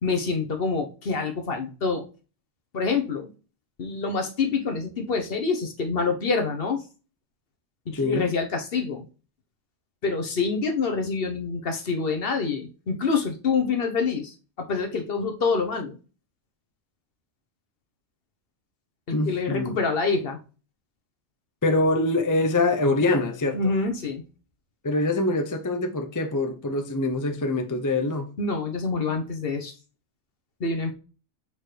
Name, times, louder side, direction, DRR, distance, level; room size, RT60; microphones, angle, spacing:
voice 1, 0.0-2.1 2.7-3.3 3.8-6.8 7.9-9.0 10.0-16.0 19.1-20.4 23.5-24.2 28.4-29.7 30.6-30.9, left 4 dB, 45° left, 1.1 m, -26 dB
voice 2, 7.9-8.3 19.1-19.8 21.6-23.6 24.8-28.3, left 2 dB, 25° left, 0.4 m, -24 dB
6.6 x 4.4 x 3.3 m
omnidirectional pair, 1.4 m